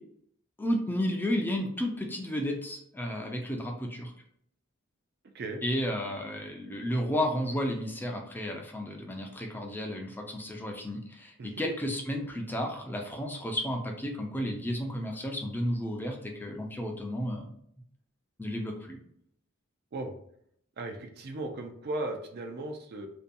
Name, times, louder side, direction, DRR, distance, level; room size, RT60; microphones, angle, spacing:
voice 1, 0.6-4.1 5.6-17.5 18.4-19.0, equal, 10° left, 2 dB, 0.4 m, -32 dB
voice 2, 20.8-23.1, right 2 dB, 55° right, 5 dB, 0.4 m, -36 dB
2.6 x 2.2 x 2.5 m, 0.68 s
head